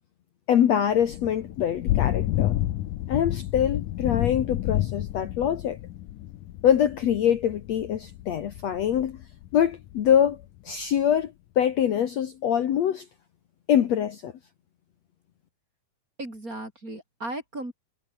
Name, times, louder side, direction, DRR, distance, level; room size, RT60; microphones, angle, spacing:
voice 1, 0.5-2.6 3.1-5.8 6.6-9.2 9.5-10.4 10.7-13.1 13.7-14.3, left 9 dB, 60° left, 2.4 m, -24 dB
Thunder / Rain, 0.9-10.4, left 14 dB, 75° left, 2.5 m, -30 dB
voice 2, 16.2-17.7, right 1 dB, 25° right, 7.5 m, -36 dB
omnidirectional pair, 3.9 m